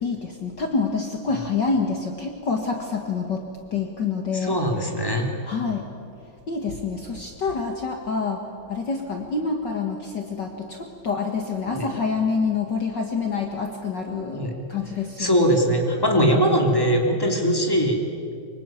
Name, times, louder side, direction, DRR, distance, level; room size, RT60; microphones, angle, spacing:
voice 1, 0.0-4.6 5.4-5.9 6.5-15.6, left 4 dB, 60° left, 3 dB, 1.1 m, -27 dB
voice 2, 4.3-5.3 11.7-11.9 14.3-14.5 15.2-18.0, equal, 5° left, 2 dB, 2.6 m, -21 dB
24.5 x 24.5 x 9.2 m, 2.4 s
omnidirectional pair, 4.7 m